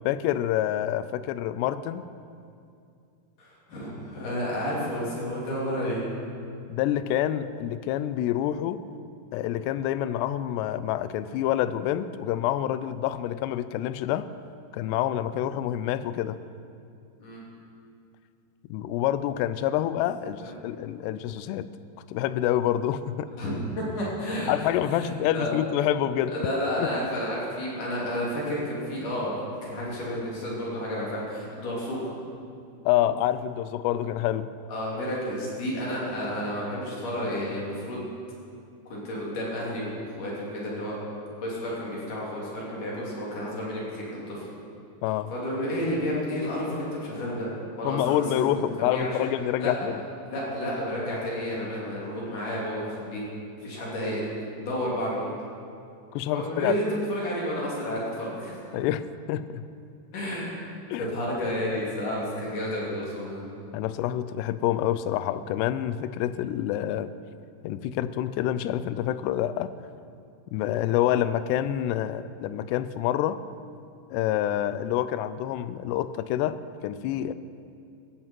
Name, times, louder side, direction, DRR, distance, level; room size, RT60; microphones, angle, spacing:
voice 1, 0.1-2.0 6.7-8.8 9.3-14.3 14.7-16.4 18.7-21.7 22.1-23.3 24.5-26.4 26.8-26.9 32.9-34.5 45.0-45.3 47.8-50.0 56.1-56.7 58.7-59.6 60.9-61.1 63.7-67.1 67.6-69.7 70.5-73.4 74.1-76.6 76.8-77.3, left 12 dB, 85° left, 14 dB, 2.7 m, -27 dB
voice 2, 3.4-6.0 17.2-17.4 20.4-20.5 23.4-24.5 24.8-25.5 26.3-32.1 34.7-38.1 38.9-41.0 41.4-44.4 45.3-47.5 47.8-48.6 48.9-49.1 49.6-49.7 50.3-53.2 53.6-54.3 54.6-55.3 56.3-58.8 60.1-60.5 60.9-63.4, equal, 50° left, -5 dB, 4.3 m, -31 dB
16.5 x 14.5 x 4.6 m, 2.5 s
omnidirectional pair, 4.8 m